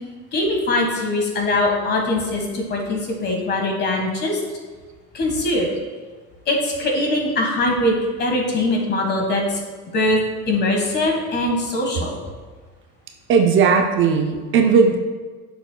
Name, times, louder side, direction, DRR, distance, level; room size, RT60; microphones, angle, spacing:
voice 1, 0.3-4.4 5.1-5.7 6.5-9.6 9.9-10.2 10.5-12.2, left 2 dB, 35° left, 1 dB, 1.5 m, -22 dB
voice 2, 13.3-15.0, right 5 dB, 45° right, 4 dB, 0.6 m, -16 dB
8.7 x 6.9 x 2.2 m, 1.4 s
cardioid pair, 145°, 29 cm